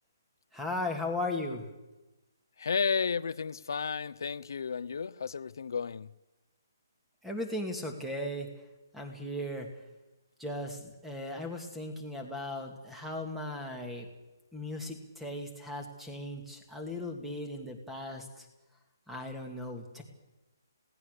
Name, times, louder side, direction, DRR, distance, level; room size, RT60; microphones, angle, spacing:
voice 1, 0.5-1.7 7.2-8.5 8.9-9.7 10.4-14.1 14.5-18.5 19.1-20.0, left 1 dB, ahead, 3 dB, 2.3 m, -37 dB
voice 2, 2.6-6.1, left 6 dB, 65° left, 16 dB, 0.9 m, -32 dB
27.0 x 17.5 x 6.8 m, 1.1 s
hypercardioid pair, 165°, 2 cm